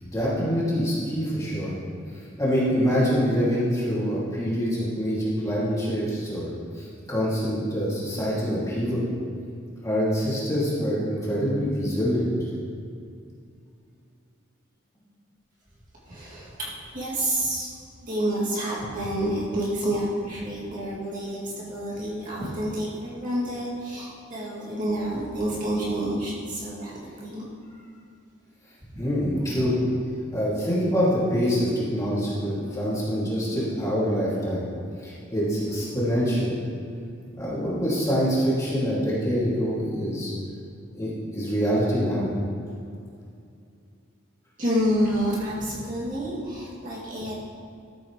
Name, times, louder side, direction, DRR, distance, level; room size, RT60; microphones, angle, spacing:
voice 1, 0.0-1.7 2.4-6.5 6.8-9.0 9.8-12.3 29.0-29.8 30.3-34.6 35.0-36.5 37.3-40.3 40.9-42.3, equal, 15° left, -8 dB, 2.5 m, -25 dB
voice 2, 16.0-17.7 18.0-27.5 44.6-47.3, right 1 dB, 40° right, -7 dB, 2.4 m, -28 dB
13.0 x 8.6 x 3.2 m, 2.4 s
head